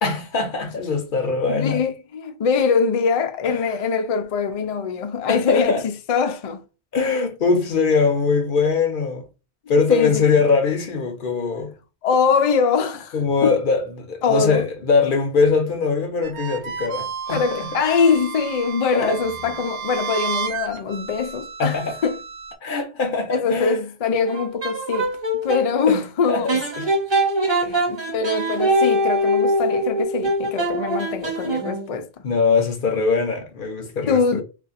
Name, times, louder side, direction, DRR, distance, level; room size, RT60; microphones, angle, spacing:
voice 1, 0.0-1.8 3.4-3.7 5.3-5.8 6.9-9.2 9.7-11.7 13.1-17.4 18.9-19.2 21.6-21.9 22.6-23.8 25.9-26.0 26.3-26.9 27.6-27.8 32.2-34.4, left 4 dB, 55° left, 0.7 m, -22 dB
voice 2, 1.5-6.6 9.7-10.2 12.0-13.2 13.4-13.5 14.2-14.6 17.3-22.2 23.3-25.1 25.4-26.5 27.9-32.1 34.1-34.4, left 5 dB, 70° left, 0.3 m, -22 dB
sound 1, 16.2-22.5, right 7 dB, 85° right, 1.0 m, -32 dB
sound 2, 24.3-25.7 26.5-31.9, right 1 dB, 25° right, 0.8 m, -22 dB
2.4 x 2.4 x 4.0 m
omnidirectional pair, 1.2 m